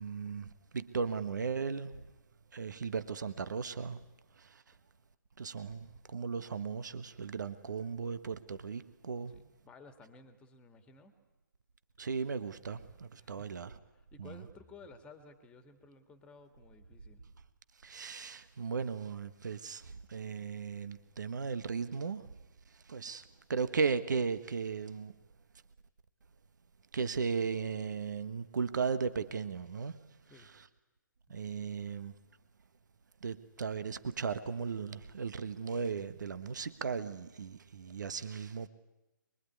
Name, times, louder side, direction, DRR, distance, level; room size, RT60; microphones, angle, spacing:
voice 1, 0.0-2.0 2.5-4.0 4.4-4.5 5.4-9.3 12.0-13.7 14.2-14.4 17.8-22.3 22.9-23.2 23.5-25.1 26.9-30.0 31.3-32.1 33.2-38.7, right 5 dB, 60° right, 1.3 m, -36 dB
voice 2, 9.3-11.1 13.2-13.5 13.9-17.2 30.2-30.5 31.3-31.4, left 4 dB, 10° left, 2.1 m, -56 dB
24.0 x 23.0 x 9.6 m
figure-of-eight pair, 140°, 11 cm